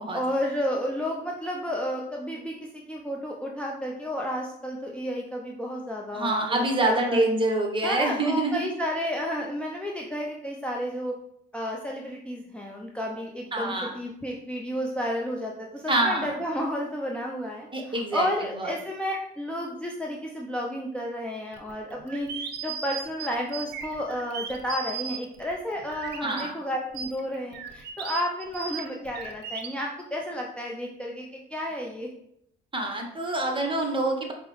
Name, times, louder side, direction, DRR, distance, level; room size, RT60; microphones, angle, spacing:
voice 1, 0.1-7.3 7.8-11.2 11.5-32.1, equal, 5° left, -1 dB, 0.5 m, -32 dB
voice 2, 6.1-8.7 13.5-14.0 15.9-16.4 17.7-18.3 18.5-18.7 26.2-26.5 32.7-34.3, right 2 dB, 25° right, 2 dB, 0.9 m, -26 dB
sound 1, 21.5-26.4 26.9-29.7, right 6 dB, 55° right, 0.5 m, -37 dB
4.6 x 2.1 x 3.0 m, 0.75 s
hypercardioid pair, 60°, 21 cm